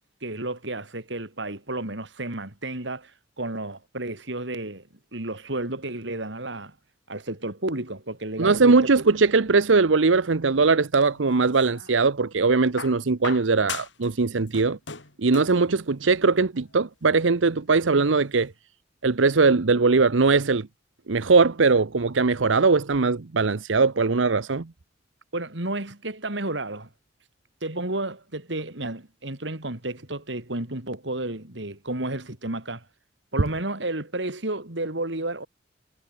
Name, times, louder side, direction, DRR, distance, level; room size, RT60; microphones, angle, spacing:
voice 1, 0.2-3.1 3.4-4.8 5.1-6.7 7.1-8.9 25.3-26.9 27.6-32.8 33.3-35.5, right 2 dB, 70° right, 3.4 m, -31 dB
voice 2, 8.4-14.8 15.2-18.5 19.0-20.7 21.1-24.7, right 4 dB, 90° right, 0.8 m, -20 dB
sound 1, 11.0-12.0 12.8-14.1 14.4-15.6 16.7-16.8, left 5 dB, 75° left, 3.8 m, -38 dB
head